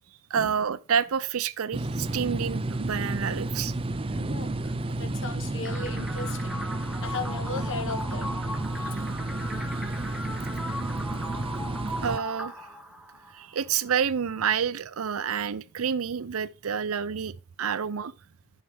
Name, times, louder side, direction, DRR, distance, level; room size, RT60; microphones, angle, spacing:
voice 1, 0.3-3.7 8.8-8.9 12.0-12.7 13.3-18.1, right 7 dB, 80° right, 0.5 m, -29 dB
sound 1, 1.7-12.2, right 2 dB, 25° right, 0.4 m, -31 dB
voice 2, 4.1-6.6 7.0-8.3, left 4 dB, 65° left, 1.2 m, -37 dB
sound 2, 5.6-13.6, equal, ahead, 0.9 m, -38 dB
13.0 x 6.5 x 3.4 m
head